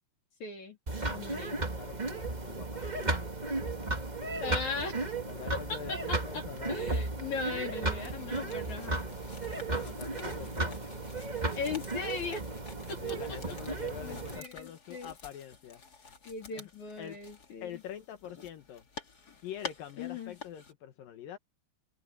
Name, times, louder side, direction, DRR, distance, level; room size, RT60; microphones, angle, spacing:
voice 1, 0.4-0.8 1.1-1.6 4.4-5.1 5.7-9.1 11.5-12.4 12.9-13.2 14.0-15.1 16.3-17.7 20.0-20.3, left 4 dB, 55° left, 4.1 m, -38 dB
sound 1, 0.9-14.4, right 2 dB, 50° right, 0.5 m, -35 dB
voice 2, 1.8-4.1 5.0-7.1 9.7-11.0 13.0-16.1 16.6-16.7 17.0-17.2 17.6-18.9 19.4-21.4, left 9 dB, 75° left, 2.9 m, -45 dB
sound 2, 8.0-20.7, left 4 dB, 35° left, 1.9 m, -50 dB
open air
omnidirectional pair, 4.1 m